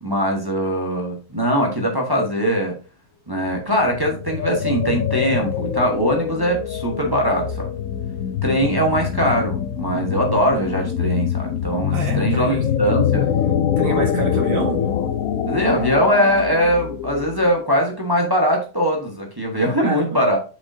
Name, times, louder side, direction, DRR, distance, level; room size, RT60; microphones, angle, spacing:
voice 1, 0.0-2.8 3.3-7.7 8.4-13.3 15.5-20.4, equal, 15° right, 0 dB, 1.1 m, -21 dB
sound 1, 3.5-17.6, left 9 dB, 80° left, 0.7 m, -24 dB
voice 2, 11.9-12.7 13.8-14.8 19.8-20.2, right 3 dB, 90° right, 1 dB, 2.6 m, -27 dB
7.6 x 6.1 x 2.7 m, 0.35 s
omnidirectional pair, 2.1 m